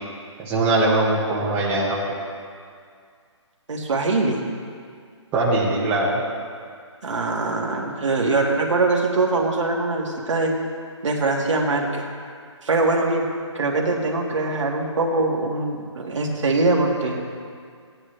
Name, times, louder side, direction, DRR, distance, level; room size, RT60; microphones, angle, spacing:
voice 1, 0.4-2.0 5.3-6.2, right 2 dB, 15° right, -6 dB, 1.6 m, -21 dB
voice 2, 3.7-4.4 7.0-10.5 11.0-12.1 12.6-13.2 13.5-17.2, right 3 dB, 75° right, -1 dB, 2.1 m, -22 dB
17.0 x 10.0 x 3.4 m, 2.1 s
hypercardioid pair, 160°, 16 cm